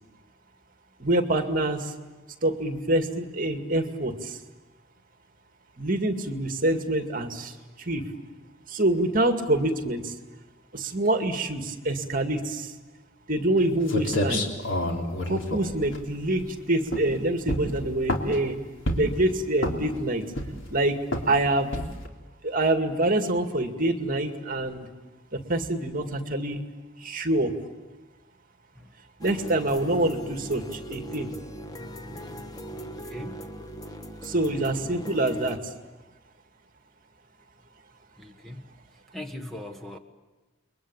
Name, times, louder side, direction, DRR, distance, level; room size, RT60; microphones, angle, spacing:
voice 1, 1.0-1.9 2.4-4.4 5.8-8.0 8.7-10.1 10.7-12.7 13.3-14.4 15.3-18.6 18.9-20.2 20.7-21.0 21.3-21.7 22.4-24.9 25.3-26.6 27.0-27.5 29.2-31.3 34.2-35.6, right 1 dB, 45° right, 6 dB, 2.2 m, -26 dB
sound 1, 13.6-13.7 13.9-16.5 16.9-17.1 17.5-18.4 18.9-19.2 19.6-20.0 20.3-20.7 21.1-21.3 21.7-22.1, left 1 dB, 75° left, 3.6 m, -28 dB
sound 2, 29.2-35.6, equal, 20° left, 1.3 m, -39 dB
voice 2, 32.9-33.5 38.2-38.6 39.1-40.0, left 1 dB, ahead, 5 dB, 1.5 m, -40 dB
30.0 x 22.5 x 8.8 m, 1.2 s
head